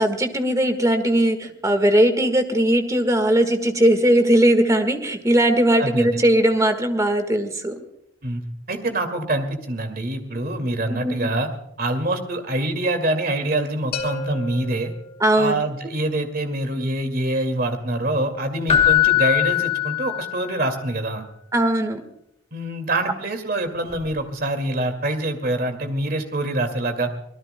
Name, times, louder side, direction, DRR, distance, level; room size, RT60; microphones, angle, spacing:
voice 1, 0.0-7.7 10.9-11.3 15.2-15.6 21.5-22.0, right 1 dB, 15° right, 7 dB, 1.6 m, -19 dB
voice 2, 5.8-6.2 8.2-8.4 8.7-11.5 11.8-14.9 15.3-21.2 22.5-27.1, right 1 dB, 50° right, 7 dB, 2.2 m, -25 dB
sound 1, 13.9-15.8, left 2 dB, 50° left, 2.1 m, -34 dB
Keyboard (musical), 18.7-20.6 23.9-24.1, left 12 dB, 30° left, 1.2 m, -20 dB
25.0 x 18.5 x 2.2 m, 0.78 s
head